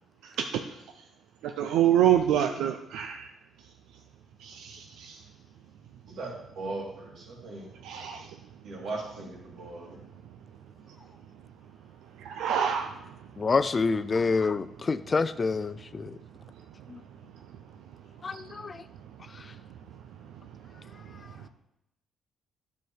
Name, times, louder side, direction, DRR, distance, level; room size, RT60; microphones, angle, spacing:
voice 1, 0.2-0.6 1.4-3.3 4.4-5.2 7.8-8.3 12.2-13.2 18.3-18.6 20.2-20.3 21.0-21.2, right 10 dB, 90° right, 5 dB, 0.5 m, -27 dB
voice 2, 6.1-7.7 8.6-10.0, right 2 dB, 70° right, -1 dB, 2.8 m, -38 dB
voice 3, 13.4-16.2 16.9-17.0 18.2-18.8, left 4 dB, 35° left, 15 dB, 0.4 m, -27 dB
9.3 x 7.0 x 4.7 m, 0.87 s
cardioid pair, 90°, 0 cm